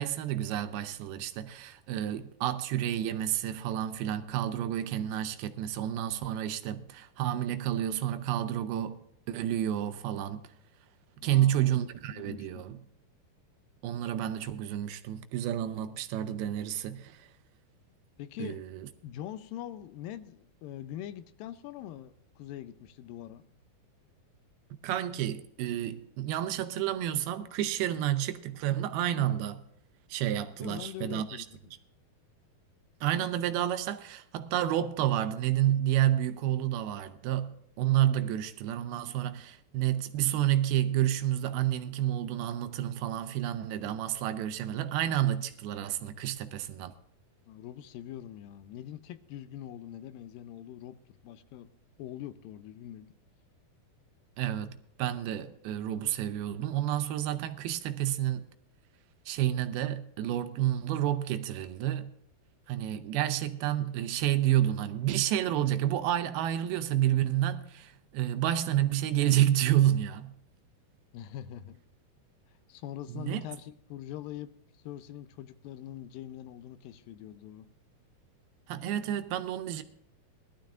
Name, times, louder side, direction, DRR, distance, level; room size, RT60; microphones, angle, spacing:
voice 1, 0.0-10.4 11.2-12.8 13.8-17.3 18.4-18.9 24.8-29.6 30.1-31.5 33.0-46.9 54.4-58.5 59.3-62.1 62.7-70.3 73.1-73.5 78.7-79.8, right 12 dB, 80° right, 2.6 m, -30 dB
voice 2, 11.2-11.7 12.1-12.7 18.2-18.6 19.0-23.4 30.5-31.5 47.5-51.0 51.2-51.7 52.0-53.1 71.1-71.8 72.7-77.7, left 11 dB, 80° left, 2.2 m, -43 dB
20.5 x 12.5 x 2.5 m
omnidirectional pair, 4.4 m